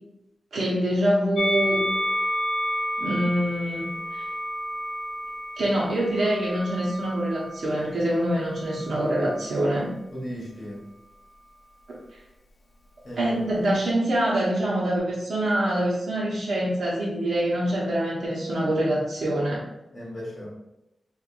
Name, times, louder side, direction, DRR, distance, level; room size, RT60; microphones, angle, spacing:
voice 1, 0.5-1.8 3.0-3.8 4.1-4.3 5.6-9.9 13.2-19.6, right 1 dB, 65° right, -6 dB, 1.0 m, -25 dB
Musical instrument, 1.4-7.8 8.6-9.6, equal, 80° left, 0.5 m, -31 dB
voice 2, 10.1-10.8 13.0-13.4 19.9-20.5, equal, 30° left, -5 dB, 1.4 m, -36 dB
4.5 x 2.5 x 2.5 m, 0.90 s
wide cardioid pair, 175°, 0 cm